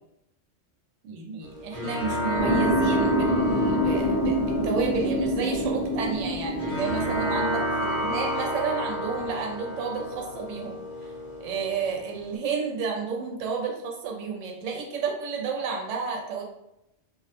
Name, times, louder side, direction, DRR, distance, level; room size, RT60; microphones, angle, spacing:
voice 1, 1.0-10.8 11.4-16.4, right 5 dB, 80° right, 0 dB, 0.9 m, -31 dB
sound 1, 1.4-12.3, equal, 45° left, 1.1 m, -31 dB
sound 2, 2.4-7.4, equal, 20° left, 1.0 m, -26 dB
2.4 x 2.1 x 2.8 m, 0.83 s
omnidirectional pair, 1.3 m